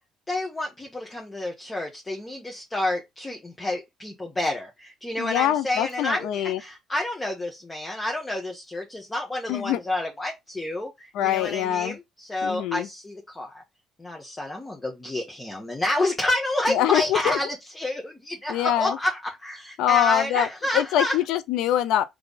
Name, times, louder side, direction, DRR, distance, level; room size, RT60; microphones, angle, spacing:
voice 1, 0.3-13.6 14.0-17.5 17.7-21.1, left 1 dB, 20° left, 1.3 m, -29 dB
voice 2, 5.2-6.6 9.5-9.8 11.1-12.0 12.4-12.9 16.7-17.4 18.5-19.0 19.8-20.5 20.7-22.0, left 11 dB, 80° left, 0.5 m, -24 dB
3.4 x 3.3 x 4.0 m
supercardioid pair, 70°, 0 cm